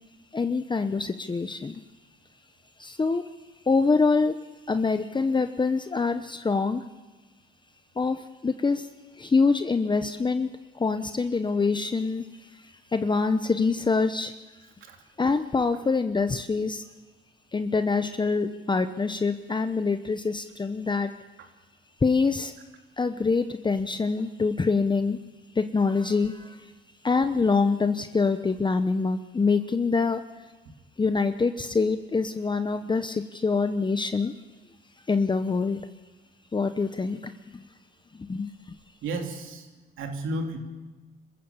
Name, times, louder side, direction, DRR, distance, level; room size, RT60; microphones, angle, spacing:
voice 1, 0.3-1.8 2.8-3.3 3.6-4.3 4.7-6.8 8.0-8.9 9.1-10.5 10.7-14.3 15.2-16.8 17.5-21.1 22.0-22.5 23.0-25.2 25.5-26.7 27.0-30.2 31.0-34.3 35.1-35.9 36.5-37.7 38.1-38.8, left 4 dB, 25° left, 9 dB, 0.9 m, -25 dB
voice 2, 39.0-39.7 40.0-40.6, right 2 dB, 80° right, 3 dB, 3.2 m, -32 dB
26.0 x 15.0 x 7.3 m, 1.2 s
cardioid pair, 90°, 20 cm